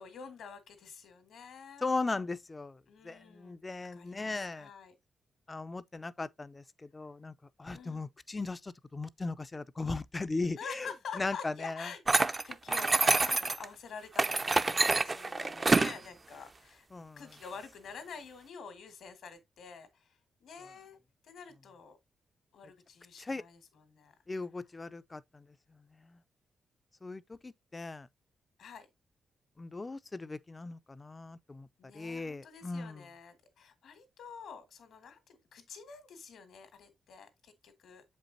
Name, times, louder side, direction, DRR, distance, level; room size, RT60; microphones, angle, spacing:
voice 1, 0.0-1.9 2.9-5.0 7.7-8.1 10.6-16.9 17.2-21.0 21.2-22.0 22.5-24.1 28.6-28.9 31.8-38.0, left 6 dB, 80° left, 2.0 m, -48 dB
voice 2, 1.8-2.8 3.0-4.7 5.5-6.6 6.9-7.3 7.6-10.9 11.2-11.9 16.9-17.2 23.2-23.4 24.3-25.2 27.0-28.1 29.6-31.7 31.9-33.0, left 3 dB, 25° left, 0.5 m, -37 dB
sound 1, 12.1-13.7 14.2-16.0, right 3 dB, 30° right, 0.5 m, -27 dB
7.2 x 5.3 x 2.7 m
cardioid pair, 85°, 0 cm